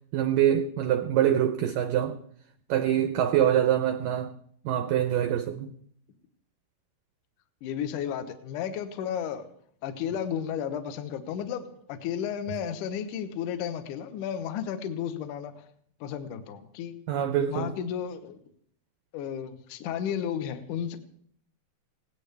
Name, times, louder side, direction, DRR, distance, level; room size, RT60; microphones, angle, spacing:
voice 1, 0.1-2.2 2.7-4.3 4.7-5.7 17.1-17.7, right 10 dB, 80° right, 2.0 m, -25 dB
voice 2, 7.6-9.5 9.8-15.7 16.0-17.0 17.5-18.4 19.1-21.0, left 8 dB, 65° left, 2.1 m, -33 dB
20.5 x 17.5 x 3.4 m
omnidirectional pair, 4.9 m